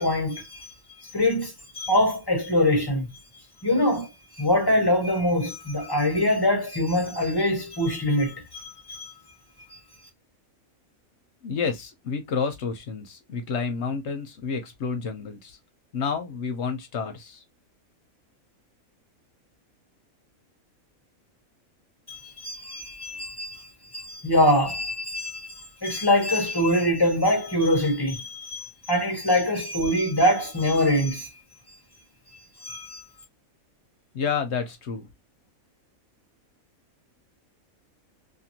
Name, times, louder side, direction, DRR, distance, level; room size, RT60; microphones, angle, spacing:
voice 1, 0.0-3.1 3.6-9.1 9.7-9.8 22.1-31.3 32.6-33.0, left 1 dB, 25° left, 0.5 m, -24 dB
voice 2, 11.4-15.6 15.9-17.4 34.1-35.1, left 5 dB, 60° left, 0.8 m, -30 dB
2.6 x 2.6 x 2.7 m
omnidirectional pair, 1.5 m